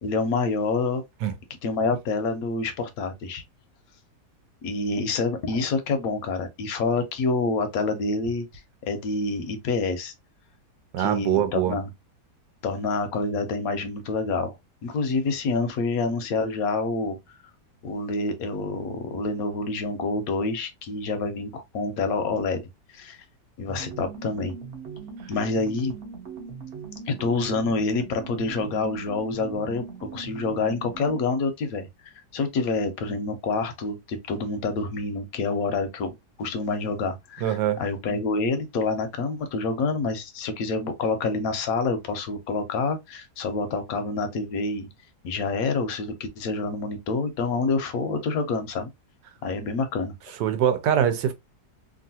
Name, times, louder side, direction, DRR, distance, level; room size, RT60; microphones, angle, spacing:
voice 1, 0.0-1.0 1.6-3.4 4.6-8.5 8.8-10.1 11.0-11.9 12.6-14.6 14.8-17.2 17.8-23.2 23.6-24.5 25.3-25.9 27.1-29.8 30.1-44.9 45.2-48.9 49.4-50.1, left 3 dB, 70° left, 1.0 m, -27 dB
voice 2, 10.9-11.8 37.4-37.8 50.4-51.3, right 10 dB, 85° right, 1.3 m, -23 dB
sound 1, 23.7-31.3, right 5 dB, 45° right, 0.8 m, -40 dB
3.0 x 2.4 x 2.6 m
omnidirectional pair, 1.8 m